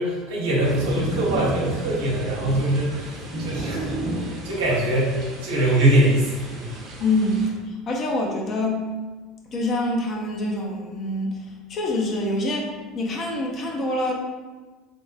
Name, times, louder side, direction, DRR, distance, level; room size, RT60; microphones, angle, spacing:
voice 1, 0.0-3.9 4.2-6.8, right 1 dB, 75° right, -5 dB, 1.0 m, -23 dB
sound 1, 0.6-7.5, right 1 dB, 45° right, 0.8 m, -32 dB
voice 2, 7.0-8.9 9.5-12.7 12.9-14.1, left 1 dB, 40° left, 0 dB, 0.6 m, -25 dB
3.5 x 2.1 x 2.7 m, 1.3 s
hypercardioid pair, 70°, 0 cm